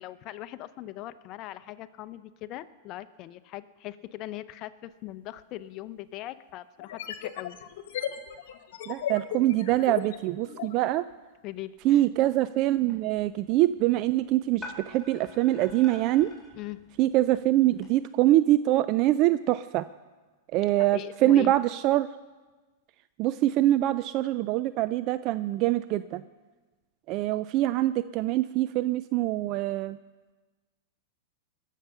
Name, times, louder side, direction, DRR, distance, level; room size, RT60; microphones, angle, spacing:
voice 1, 0.0-7.6 11.4-12.0 16.6-16.8 20.8-21.5, left 15 dB, 40° left, 14 dB, 0.6 m, -40 dB
sound 1, 5.4-5.5 6.8-10.8, left 10 dB, 70° left, 1.2 m, -36 dB
voice 2, 8.9-11.0 11.8-16.3 17.0-19.8 20.5-22.1 23.2-26.2 27.1-30.0, right 15 dB, 45° right, 14 dB, 0.4 m, -24 dB
sound 2, 12.8-17.9, left 2 dB, 5° left, 4.7 m, -48 dB
21.0 x 7.4 x 5.6 m, 1.3 s
hypercardioid pair, 120°, 0 cm